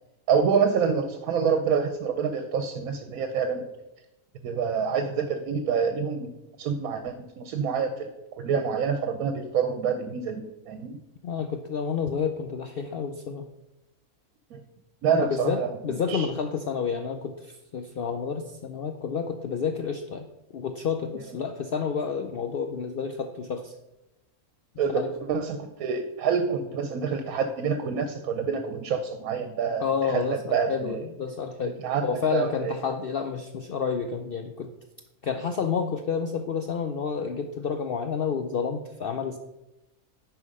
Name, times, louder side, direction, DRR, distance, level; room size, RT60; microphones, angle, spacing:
voice 1, 0.3-3.6 4.4-6.3 6.6-8.1 8.4-11.0 14.5-14.6 15.0-15.7 16.1-16.3 24.8-25.0 25.3-31.0 31.8-32.7, right 6 dB, 75° right, 8 dB, 1.1 m, -27 dB
voice 2, 11.2-13.5 15.3-20.3 20.5-23.8 24.9-25.1 29.8-31.7 32.0-34.7 35.2-39.4, left 6 dB, 75° left, 7 dB, 0.5 m, -30 dB
9.7 x 4.8 x 5.3 m, 0.96 s
omnidirectional pair, 1.6 m